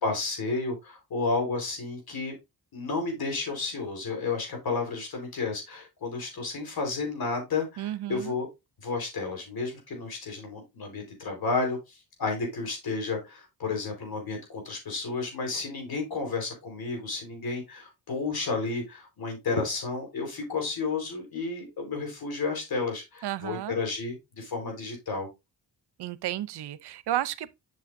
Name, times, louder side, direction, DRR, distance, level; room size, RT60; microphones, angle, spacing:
voice 1, 0.0-2.4 2.7-8.5 8.8-25.3, left 4 dB, 65° left, 4.5 m, -32 dB
voice 2, 7.8-8.4 23.2-23.8 26.0-27.5, right 13 dB, 80° right, 0.7 m, -32 dB
8.4 x 6.6 x 2.6 m
cardioid pair, 70°, 40 cm